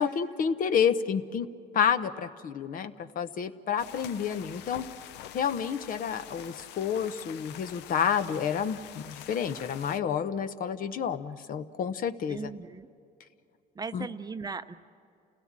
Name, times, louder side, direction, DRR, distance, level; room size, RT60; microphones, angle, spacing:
voice 1, 0.0-1.5 1.7-4.8 5.3-12.5 13.9-14.1, left 7 dB, 55° left, 11 dB, 0.9 m, -29 dB
sound 1, 3.8-10.0, left 11 dB, 85° left, 0.6 m, -46 dB
voice 2, 12.3-12.9 13.8-14.8, right 4 dB, 20° right, 10 dB, 0.7 m, -38 dB
29.0 x 16.5 x 7.4 m, 2.5 s
cardioid pair, 110°, 17 cm